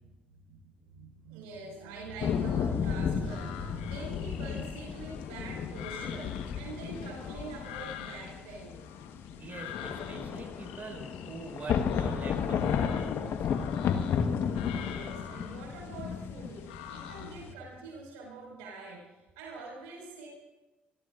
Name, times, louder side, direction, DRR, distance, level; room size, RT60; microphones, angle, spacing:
voice 1, 0.0-8.7 14.8-19.1 19.4-20.3, right 3 dB, 75° right, -1 dB, 5.3 m, -45 dB
sound 1, 2.2-17.5, left 7 dB, 60° left, 1.3 m, -33 dB
sound 2, 3.2-17.5, left 9 dB, 85° left, 1.2 m, -47 dB
voice 2, 9.4-13.4, right 3 dB, 40° right, 2 dB, 5.3 m, -44 dB
29.5 x 18.5 x 2.5 m, 1.1 s
hypercardioid pair, 45°, 5 cm